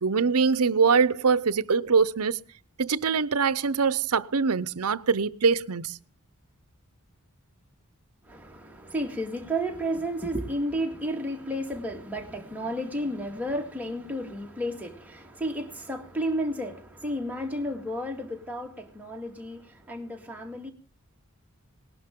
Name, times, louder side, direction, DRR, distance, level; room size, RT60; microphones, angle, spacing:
voice 1, 0.0-2.4 2.8-6.0, right 5 dB, 80° right, 0.7 m, -23 dB
voice 2, 8.2-20.7, equal, 5° right, 2.2 m, -32 dB
19.0 x 11.5 x 3.7 m
head